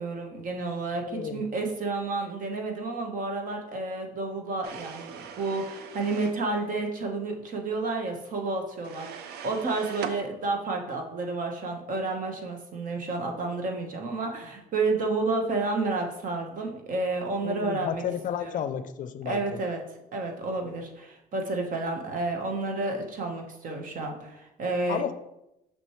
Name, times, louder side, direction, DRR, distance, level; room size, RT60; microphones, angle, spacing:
voice 1, 0.0-18.0 18.4-18.6 19.2-19.8 20.1-25.0, right 3 dB, 55° right, 3 dB, 1.2 m, -30 dB
voice 2, 1.1-1.4 17.4-19.6 24.9-25.1, left 9 dB, 50° left, 12 dB, 0.5 m, -32 dB
sound 1, 4.6-6.4 8.8-10.2, right 6 dB, 70° right, 0.6 m, -40 dB
6.2 x 6.1 x 3.1 m, 0.90 s
cardioid pair, 110°, 17 cm